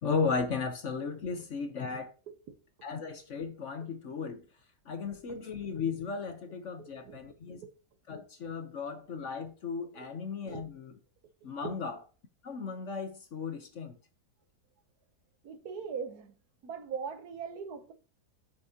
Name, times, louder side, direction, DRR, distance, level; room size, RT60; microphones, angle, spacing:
voice 1, 0.0-2.1 2.8-4.4 4.9-7.6 8.1-10.9 11.4-12.0 12.4-14.0, left 5 dB, 55° left, 1.1 m, -35 dB
voice 2, 6.8-7.2 7.6-7.7 9.9-10.1 10.4-10.6 11.6-11.7 15.4-16.3 16.6-17.9, right 6 dB, 70° right, 1.4 m, -40 dB
7.8 x 6.5 x 2.8 m
omnidirectional pair, 1.8 m